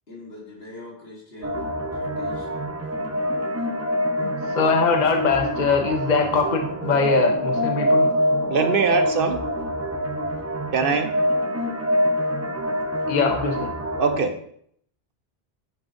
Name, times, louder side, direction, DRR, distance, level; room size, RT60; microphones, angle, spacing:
voice 1, 0.1-1.6 1.9-2.6, left 2 dB, 70° left, -3 dB, 2.2 m, -42 dB
sound 1, 1.4-14.2, equal, 15° right, 0.7 m, -25 dB
voice 2, 4.2-8.1 13.1-13.7, left 4 dB, 50° left, 4 dB, 0.9 m, -22 dB
voice 3, 8.5-9.4 10.7-11.1 14.0-14.4, right 5 dB, 65° right, 7 dB, 0.8 m, -22 dB
10.5 x 4.8 x 2.6 m, 0.66 s
omnidirectional pair, 1.1 m